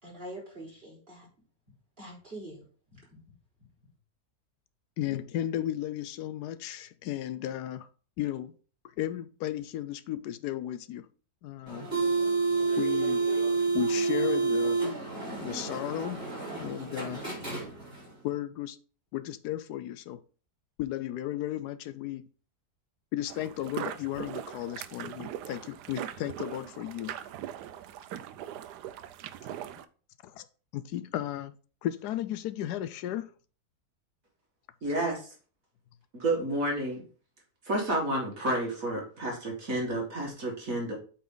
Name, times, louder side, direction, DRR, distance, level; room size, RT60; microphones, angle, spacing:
voice 1, 0.0-1.3 2.0-2.6 2.9-3.2, right 1 dB, 35° right, 4.2 m, -44 dB
voice 2, 5.0-7.9 8.2-8.5 9.0-11.1 11.4-11.9 12.8-13.2 13.7-14.8 15.4-16.2 16.5-17.2 18.2-18.8 19.1-20.2 20.8-22.2 23.1-27.1 30.2-30.5 30.7-31.5 31.8-33.3, left 12 dB, 80° left, 1.1 m, -34 dB
sound 1, 11.7-18.1, right 4 dB, 20° right, 4.1 m, -29 dB
sound 2, 23.3-29.8, right 11 dB, 85° right, 1.2 m, -40 dB
voice 3, 34.8-35.2 36.1-37.0 37.7-40.9, right 1 dB, 55° right, 2.3 m, -30 dB
8.4 x 4.2 x 3.8 m
omnidirectional pair, 1.7 m